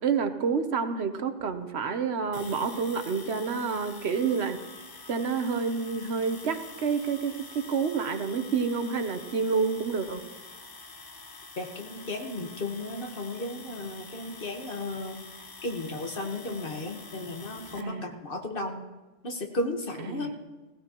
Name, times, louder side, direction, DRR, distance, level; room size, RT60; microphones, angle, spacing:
voice 1, 0.0-4.6 5.1-10.2 17.8-18.1 20.0-20.3, right 5 dB, 70° right, 9 dB, 1.1 m, -29 dB
sound 1, 2.3-17.8, left 3 dB, 25° left, 0.5 m, -46 dB
voice 2, 11.6-15.2 15.6-18.8 19.2-20.3, left 2 dB, 55° left, 3 dB, 1.5 m, -34 dB
17.0 x 15.5 x 3.0 m, 1.2 s
omnidirectional pair, 1.2 m